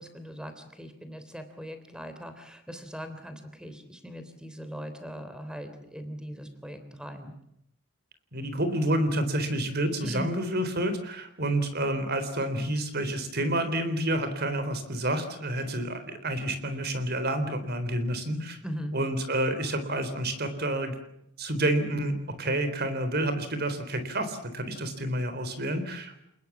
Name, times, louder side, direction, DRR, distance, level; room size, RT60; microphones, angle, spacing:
voice 1, 0.0-7.3 10.0-10.3 18.6-18.9, equal, 5° right, 9 dB, 3.4 m, -40 dB
voice 2, 8.3-18.6 18.9-21.0 21.4-26.2, right 1 dB, 45° right, 10 dB, 3.8 m, -29 dB
29.5 x 20.0 x 7.2 m, 0.78 s
head